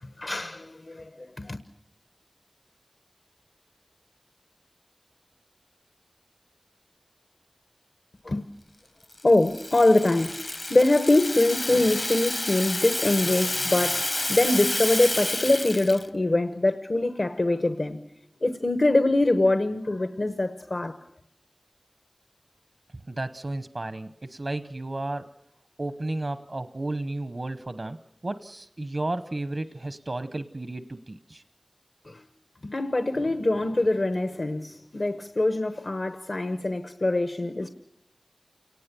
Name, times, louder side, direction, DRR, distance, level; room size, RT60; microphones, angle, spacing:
voice 1, 0.0-1.6 8.2-8.4 9.2-18.0 18.4-21.0 32.0-32.2 32.6-37.7, left 2 dB, 75° left, 1.0 m, -24 dB
Rattle (instrument), 9.1-16.1, left 1 dB, 50° left, 0.8 m, -30 dB
voice 2, 23.1-25.3 25.8-28.0 28.2-31.4, right 2 dB, 70° right, 0.9 m, -33 dB
29.0 x 19.0 x 6.9 m
wide cardioid pair, 50°, 0 cm